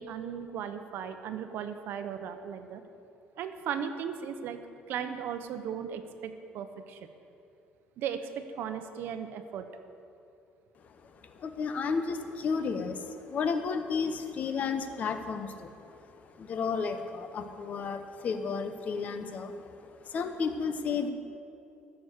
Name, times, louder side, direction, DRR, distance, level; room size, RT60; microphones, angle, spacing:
voice 1, 0.0-2.8 3.4-4.6 4.9-7.1 8.0-9.7, right 8 dB, 70° right, 9 dB, 0.8 m, -37 dB
voice 2, 11.0-21.1, left 5 dB, 45° left, 8 dB, 0.9 m, -33 dB
14.5 x 7.0 x 6.6 m, 2.6 s
cardioid pair, 145°, 4 cm